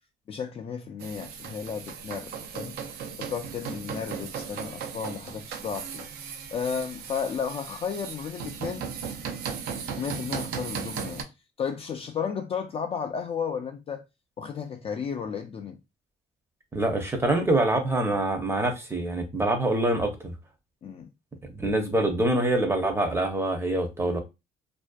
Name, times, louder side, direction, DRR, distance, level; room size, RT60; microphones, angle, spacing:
voice 1, 0.3-2.8 3.2-6.1 6.5-8.9 10.0-11.3 11.6-14.0 14.4-15.8 20.8-21.1, left 6 dB, 35° left, 0.3 m, -33 dB
sound 1, 1.0-11.2, right 7 dB, 70° right, 0.4 m, -37 dB
voice 2, 16.7-20.3 21.5-24.2, right 1 dB, 15° right, 0.6 m, -25 dB
2.5 x 2.1 x 2.2 m
cardioid pair, 110°, 17 cm